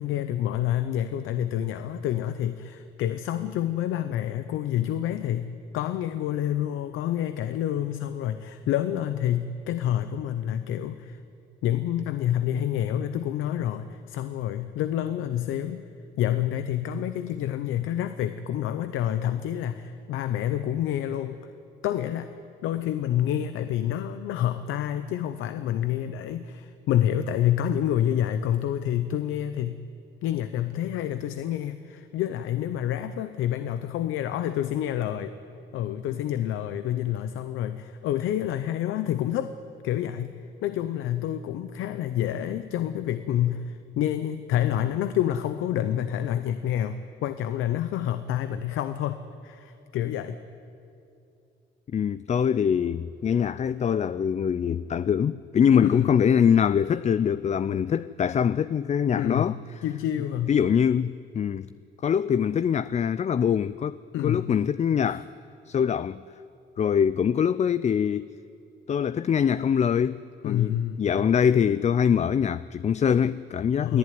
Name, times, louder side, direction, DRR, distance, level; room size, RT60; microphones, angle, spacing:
voice 1, 0.0-5.4 5.7-11.2 11.6-15.8 16.2-21.4 21.8-22.3 22.6-29.8 30.2-35.3 35.7-39.5 39.8-40.3 40.6-50.4 55.8-56.1 59.2-60.6 64.1-64.5 70.4-71.1 73.8-74.0, left 11 dB, 90° left, 0.7 m, -28 dB
voice 2, 51.9-59.8 60.5-61.7 62.0-65.3 65.7-66.2 66.8-68.3 68.9-74.0, left 8 dB, 35° left, 0.4 m, -24 dB
23.0 x 14.5 x 9.4 m
cardioid pair, 90°, 20 cm